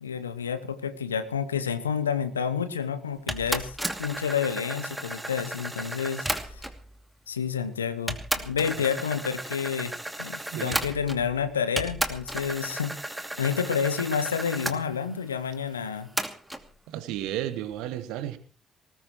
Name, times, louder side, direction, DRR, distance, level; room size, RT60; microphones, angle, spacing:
voice 1, 0.0-6.3 6.5-6.6 7.3-9.9 10.2-12.9 13.4-16.1, left 7 dB, 85° left, 13 dB, 0.9 m, -29 dB
sound 1, 3.3-6.8 7.6-7.7 8.1-11.4 11.8-14.8 16.2-16.6, right 1 dB, 5° right, 2.6 m, -33 dB
voice 2, 16.9-18.4, right 12 dB, 70° right, 10 dB, 1.7 m, -33 dB
20.0 x 19.5 x 3.1 m, 0.39 s
figure-of-eight pair, 45°, 0 cm